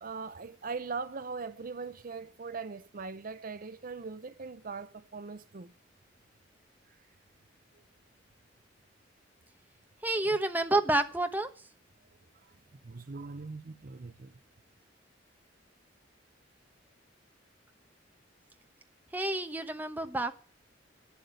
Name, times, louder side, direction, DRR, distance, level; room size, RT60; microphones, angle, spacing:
voice 1, 0.0-5.7 10.3-10.4 12.4-12.5 12.8-14.4, right 4 dB, 50° right, 0.6 m, -40 dB
voice 2, 10.0-11.5 19.1-20.4, right 2 dB, 10° right, 1.1 m, -29 dB
11.5 x 8.2 x 9.1 m
head